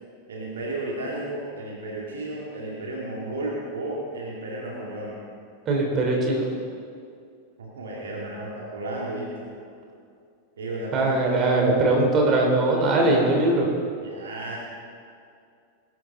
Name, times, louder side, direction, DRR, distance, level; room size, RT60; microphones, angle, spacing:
voice 1, 0.3-5.2 7.6-9.5 10.6-12.0 14.0-14.6, right 2 dB, 65° right, -3 dB, 2.3 m, -33 dB
voice 2, 5.6-6.5 10.9-13.7, right 2 dB, 30° right, 0 dB, 3.3 m, -21 dB
21.0 x 12.0 x 3.9 m, 2.4 s
figure-of-eight pair, 90°, 0 cm